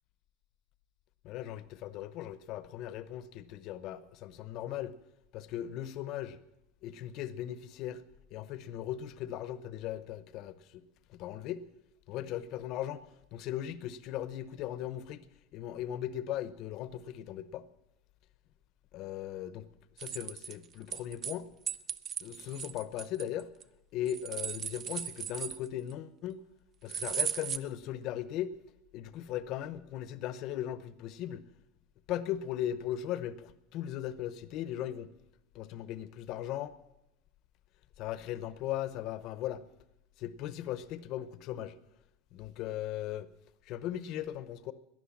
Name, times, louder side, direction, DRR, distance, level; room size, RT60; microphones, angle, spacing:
voice 1, 1.2-4.9 5.3-6.4 6.8-8.0 8.3-10.8 11.1-11.6 12.1-13.0 13.3-15.2 15.5-17.6 18.9-19.7 20.0-21.5 22.2-23.5 23.9-26.4 26.8-28.5 28.9-31.4 32.1-35.1 35.5-36.7 38.0-39.6 40.2-41.7 42.3-43.3 43.7-44.7, left 11 dB, 40° left, 15 dB, 0.8 m, -38 dB
sound 1, 20.0-21.4 21.7-23.6 24.1-25.9 26.9-27.6, right 8 dB, 25° right, 0.5 m, -37 dB
18.0 x 11.0 x 7.2 m, 0.88 s
supercardioid pair, 175°, 0 cm